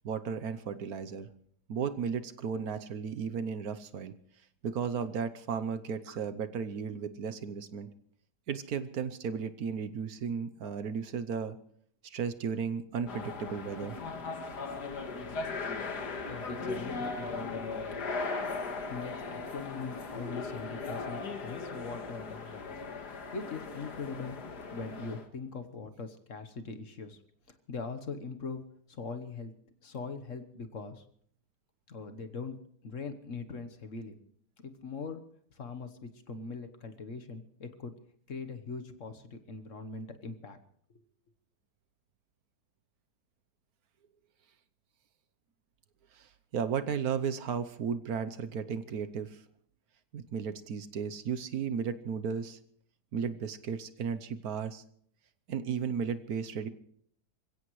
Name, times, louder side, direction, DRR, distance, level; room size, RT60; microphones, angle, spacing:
voice 1, 0.0-1.3 1.7-4.1 4.6-7.9 8.5-11.6 12.0-14.0 46.1-49.4 50.1-52.6 53.1-54.8 55.5-56.7, right 6 dB, 65° right, 11 dB, 1.3 m, -34 dB
sound 1, 13.1-25.3, left 4 dB, 75° left, 2.2 m, -38 dB
voice 2, 16.3-17.8 18.9-22.7 23.1-24.4 24.7-27.2 27.5-28.6 28.9-29.5 29.8-31.0 31.9-32.6 32.8-34.2 34.6-35.2 35.5-37.9 38.3-40.6 40.9-41.0, left 4 dB, 50° left, 9 dB, 1.4 m, -41 dB
27.5 x 16.0 x 3.2 m, 0.63 s
omnidirectional pair, 1.8 m